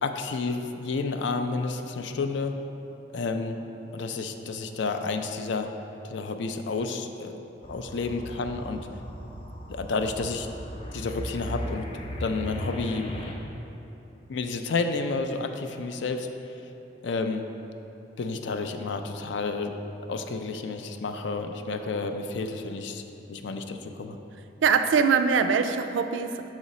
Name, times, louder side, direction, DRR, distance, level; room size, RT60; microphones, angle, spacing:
voice 1, 0.0-2.6 3.1-3.6 3.9-5.7 6.0-7.4 7.7-8.8 9.7-10.5 10.9-11.9 12.2-13.2 14.3-16.3 17.0-17.4 18.2-19.8 20.1-24.2, left 4 dB, 75° left, 7 dB, 0.4 m, -30 dB
sound 1, 7.6-13.3, equal, 30° left, 0.6 m, -37 dB
voice 2, 24.6-26.5, right 6 dB, 85° right, 9 dB, 0.3 m, -23 dB
6.3 x 4.9 x 4.1 m, 2.9 s
head